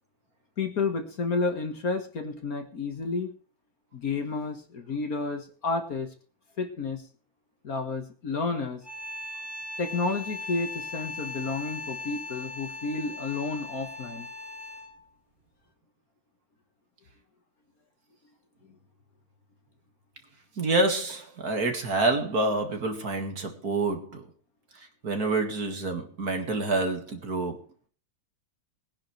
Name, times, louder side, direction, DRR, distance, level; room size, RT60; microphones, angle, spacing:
voice 1, 0.6-3.3 3.9-6.1 6.6-7.0 7.6-8.8 9.8-14.3, left 4 dB, 50° left, 6 dB, 1.8 m, -31 dB
sound 1, 8.8-15.0, left 2 dB, 10° right, 6.3 m, -38 dB
voice 2, 20.6-24.2 25.0-27.6, right 2 dB, 50° right, 5 dB, 2.4 m, -27 dB
21.0 x 10.5 x 3.3 m, 0.38 s
omnidirectional pair, 2.1 m